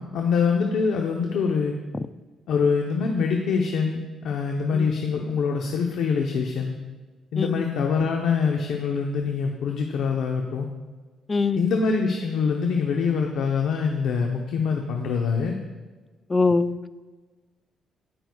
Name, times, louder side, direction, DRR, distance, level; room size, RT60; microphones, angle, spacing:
voice 1, 0.0-1.7 2.5-6.7 7.3-10.7 11.5-15.6, left 5 dB, 80° left, 2 dB, 0.8 m, -24 dB
voice 2, 11.3-11.7 16.3-16.9, left 3 dB, 25° left, 14 dB, 0.3 m, -23 dB
17.5 x 6.0 x 2.4 m, 1.3 s
cardioid pair, 90°, 0 cm